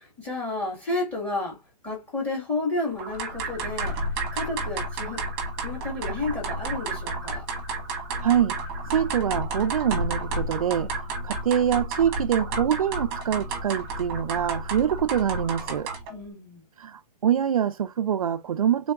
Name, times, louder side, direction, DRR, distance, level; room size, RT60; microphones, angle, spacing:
voice 1, 0.0-1.6 1.8-4.0 4.3-5.3 5.6-7.4 16.1-16.6, left 2 dB, 5° left, 2.0 m, -31 dB
sound 1, 3.0-16.2, right 2 dB, 20° right, 1.3 m, -31 dB
voice 2, 8.2-8.6 8.9-10.9 11.2-15.9 16.8-18.9, right 9 dB, 60° right, 0.5 m, -25 dB
3.8 x 3.4 x 3.4 m
hypercardioid pair, 175°, 20 cm